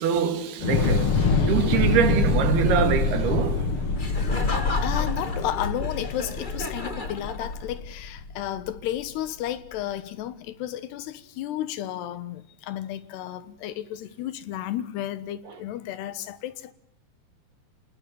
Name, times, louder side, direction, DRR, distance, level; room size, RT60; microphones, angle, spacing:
voice 1, 0.0-3.7 5.0-5.1, right 8 dB, 80° right, 3.8 m, -24 dB
Thunder / Explosion, 0.6-8.8, left 4 dB, 40° left, 2.2 m, -25 dB
Laughter, 4.0-7.9, left 2 dB, 20° left, 1.4 m, -34 dB
voice 2, 4.6-16.7, left 12 dB, 85° left, 3.4 m, -33 dB
27.0 x 19.5 x 7.5 m
omnidirectional pair, 4.6 m